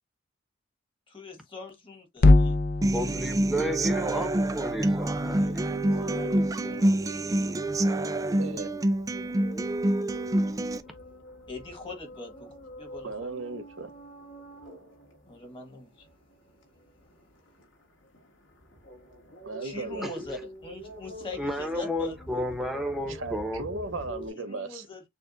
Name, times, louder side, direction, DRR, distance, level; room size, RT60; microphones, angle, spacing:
voice 1, 1.1-2.6 5.8-7.3 11.5-12.5 12.8-13.3 15.2-16.1 19.6-22.4 24.3-25.0, left 2 dB, 25° left, 1.5 m, -42 dB
sound 1, 2.2-6.5, left 2 dB, 50° left, 0.5 m, -25 dB
Human voice / Acoustic guitar, 2.8-10.8, right 1 dB, 15° right, 0.3 m, -27 dB
voice 2, 2.9-5.6 20.0-20.2 21.4-23.7, equal, ahead, 0.9 m, -32 dB
sound 2, 5.2-24.3, right 1 dB, 70° left, 2.0 m, -46 dB
voice 3, 8.4-8.7 13.0-13.9 19.4-20.1 23.1-24.9, right 3 dB, 80° right, 1.0 m, -36 dB
6.9 x 2.4 x 2.5 m
head